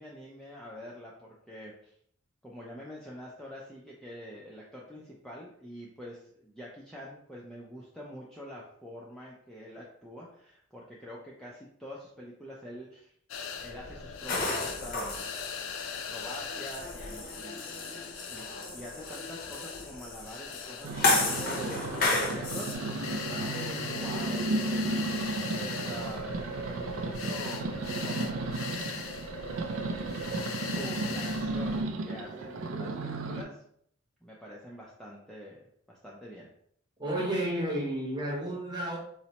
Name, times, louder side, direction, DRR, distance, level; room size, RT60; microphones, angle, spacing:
voice 1, 0.0-1.9 2.4-13.1 13.6-15.3 16.1-23.1 23.5-28.4 30.6-33.6 34.2-36.5, equal, ahead, -5 dB, 0.4 m, -45 dB
sound 1, 13.3-31.8, left 6 dB, 75° left, 0.4 m, -40 dB
sound 2, 14.3-22.7, left 3 dB, 45° left, 0.6 m, -33 dB
sound 3, 20.8-33.4, right 2 dB, 70° right, 0.4 m, -34 dB
voice 2, 23.3-23.6 37.0-39.0, right 1 dB, 20° right, -3 dB, 0.8 m, -32 dB
4.0 x 2.1 x 2.8 m, 0.67 s
head